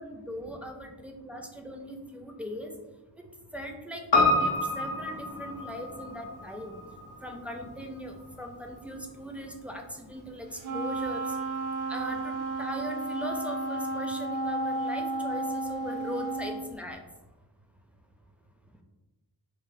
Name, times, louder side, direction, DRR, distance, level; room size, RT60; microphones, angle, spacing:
voice 1, 0.0-2.7 3.2-3.3 3.5-6.8 7.2-11.4 11.9-17.0, equal, 5° right, 1 dB, 0.4 m, -39 dB
Piano, 4.1-8.6 8.9-9.0, left 2 dB, 85° left, 0.7 m, -28 dB
Wind instrument woodwind instrument, 10.6-16.7, right 2 dB, 75° right, 0.6 m, -32 dB
3.1 x 2.3 x 2.5 m, 1.1 s
cardioid pair, 55°, 40 cm